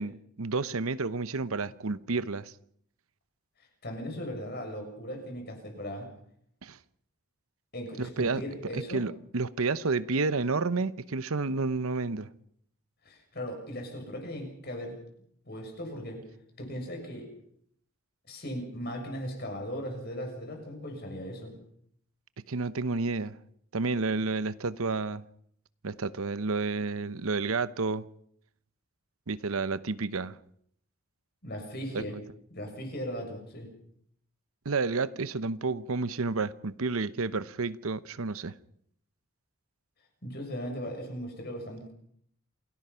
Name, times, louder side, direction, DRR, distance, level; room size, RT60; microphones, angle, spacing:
voice 1, 0.0-2.5 6.6-6.8 8.0-8.4 8.7-12.3 22.5-23.4 23.7-25.2 25.8-28.0 29.3-30.4 31.9-32.0 34.6-38.5, right 3 dB, 75° right, 0.8 m, -30 dB
voice 2, 3.8-6.1 7.7-9.0 13.0-15.0 15.4-16.2 16.6-17.3 18.3-21.5 31.4-32.2 32.5-33.7 40.2-41.9, equal, 45° left, 7.2 m, -38 dB
28.0 x 18.0 x 5.7 m
head